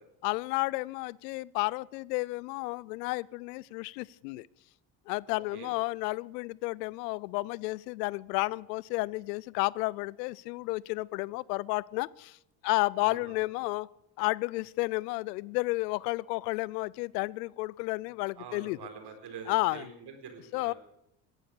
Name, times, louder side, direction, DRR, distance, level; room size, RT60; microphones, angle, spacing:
voice 1, 0.2-4.5 5.1-12.4 12.6-13.9 14.2-18.8 19.5-19.9 20.5-20.7, left 23 dB, 80° left, 24 dB, 0.5 m, -32 dB
voice 2, 5.3-5.7 13.0-13.3 18.4-20.7, right 6 dB, 55° right, 5 dB, 4.0 m, -45 dB
17.5 x 11.5 x 6.8 m, 0.81 s
hypercardioid pair, 65°, 48 cm